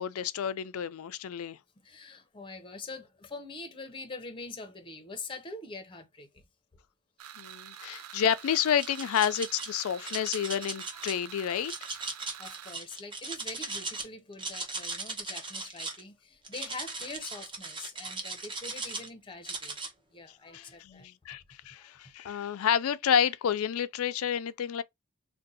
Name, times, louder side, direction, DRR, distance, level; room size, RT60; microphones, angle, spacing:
voice 1, 0.0-1.6 7.4-11.7 20.5-24.8, left 9 dB, 75° left, 0.4 m, -29 dB
voice 2, 1.8-6.4 12.4-19.8 20.1-21.1 21.7-21.9, left 3 dB, 25° left, 0.6 m, -44 dB
sound 1, 7.2-12.7, right 10 dB, 85° right, 0.4 m, -47 dB
sound 2, 8.5-9.7 10.0-11.1 11.6-14.1 14.3-16.0 16.4-19.1 19.4-19.9, right 3 dB, 25° right, 0.8 m, -38 dB
2.6 x 2.1 x 4.0 m
head